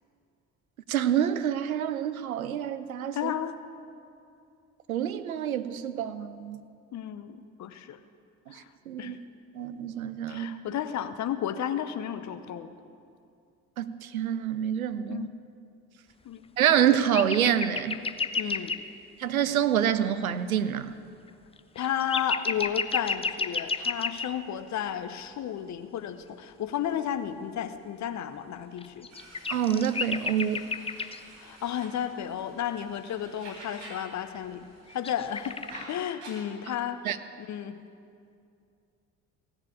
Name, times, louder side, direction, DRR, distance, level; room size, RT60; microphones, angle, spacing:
voice 1, 0.9-3.3 4.9-6.6 8.5-9.2 9.5-10.5 13.8-15.3 16.6-18.0 19.2-20.9 29.5-30.7 37.0-37.2, right 9 dB, 90° right, 13 dB, 0.5 m, -27 dB
voice 2, 3.1-3.6 6.9-8.0 8.5-8.6 9.0-9.2 10.3-12.7 15.1-15.3 16.2-16.4 18.4-18.8 21.7-29.1 31.4-34.6 34.9-35.6 35.9-37.0 37.5-37.8, left 9 dB, 45° left, 10 dB, 0.8 m, -33 dB
sound 1, 16.6-18.8 21.3-21.4 21.6-24.3 28.8-31.2 34.9-35.8, left 5 dB, 15° left, 0.5 m, -31 dB
sound 2, 29.1-34.2 34.4-36.3, right 2 dB, 65° right, 3.4 m, -49 dB
16.5 x 6.7 x 8.3 m, 2.5 s
figure-of-eight pair, 50°, 41 cm